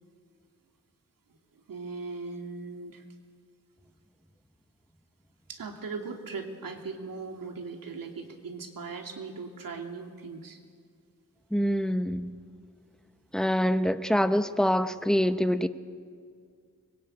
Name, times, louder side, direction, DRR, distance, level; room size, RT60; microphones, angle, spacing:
voice 1, 1.7-3.0 5.5-10.6, right 4 dB, 90° right, 3 dB, 2.9 m, -39 dB
voice 2, 11.5-12.4 13.3-15.7, equal, ahead, 10 dB, 1.0 m, -25 dB
24.5 x 22.5 x 9.0 m, 2.1 s
wide cardioid pair, 105°, 33 cm